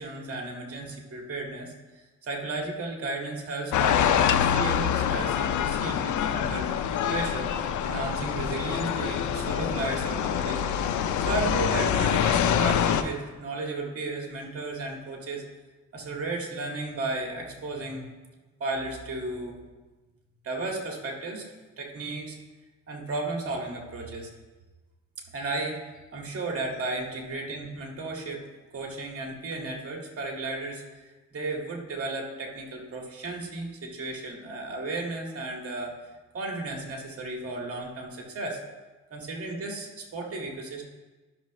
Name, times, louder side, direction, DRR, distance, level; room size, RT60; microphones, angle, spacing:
voice 1, 0.0-6.7 7.1-7.5 7.8-10.8 11.2-15.4 15.9-18.1 18.6-19.6 20.4-21.5 21.8-22.4 22.9-24.3 25.3-25.8 26.1-28.4 28.7-35.9 36.3-38.6 39.1-40.8, right 2 dB, 50° right, 0 dB, 2.0 m, -34 dB
sound 1, 3.7-13.0, left 9 dB, 75° left, 0.6 m, -25 dB
12.0 x 6.1 x 3.1 m, 1.2 s
cardioid pair, 90°, 30 cm